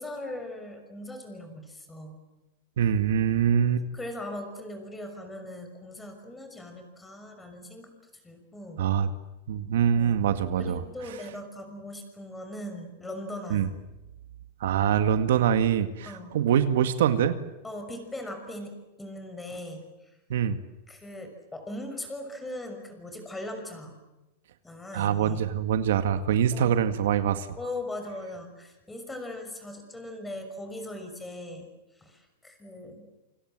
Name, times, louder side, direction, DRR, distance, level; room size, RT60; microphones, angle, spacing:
voice 1, 0.0-2.2 3.9-7.9 8.2-8.8 9.9-10.2 10.6-13.8 16.1-16.3 17.6-20.2 20.9-24.0 24.6-25.4 26.5-26.8 27.6-31.7 31.9-33.1, left 1 dB, 10° left, 6 dB, 6.1 m, -39 dB
voice 2, 2.8-3.8 8.8-9.1 9.5-10.8 13.5-13.7 14.6-17.4 20.3-20.6 24.9-27.5, right 9 dB, 75° right, 9 dB, 2.0 m, -24 dB
28.5 x 26.0 x 7.7 m, 1.0 s
supercardioid pair, 150°, 0 cm